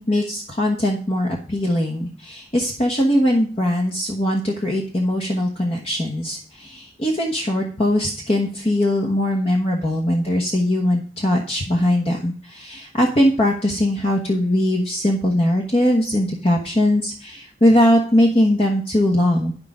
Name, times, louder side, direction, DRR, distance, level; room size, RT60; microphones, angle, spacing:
voice 1, 0.0-19.5, left 1 dB, 35° left, 0 dB, 1.3 m, -20 dB
9.5 x 6.7 x 5.0 m, 0.43 s
head